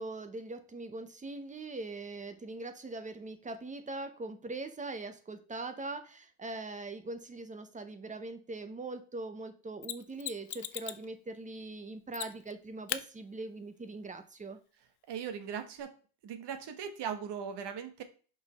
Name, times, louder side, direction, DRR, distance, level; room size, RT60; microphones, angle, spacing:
voice 1, 0.0-14.6, right 2 dB, 15° right, 9 dB, 0.6 m, -41 dB
Mechanisms, 9.8-11.1 12.1-12.5 12.9-13.0 15.8-15.9, left 13 dB, 60° left, 0.6 m, -38 dB
voice 2, 15.1-15.9 16.2-18.0, right 7 dB, 60° right, 8 dB, 1.3 m, -39 dB
5.5 x 5.2 x 4.0 m, 0.38 s
cardioid pair, 165°, 46 cm